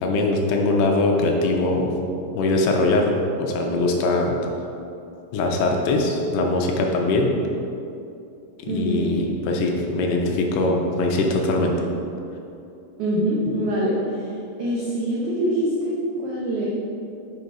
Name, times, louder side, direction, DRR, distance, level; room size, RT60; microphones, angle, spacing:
voice 1, 0.0-1.9 2.3-4.4 5.3-7.3 8.6-11.8, left 2 dB, 80° left, 1 dB, 2.7 m, -21 dB
voice 2, 8.7-9.1 13.0-14.2 14.6-16.7, equal, 85° right, -6 dB, 1.6 m, -24 dB
6.8 x 5.3 x 4.7 m, 2.7 s
omnidirectional pair, 4.8 m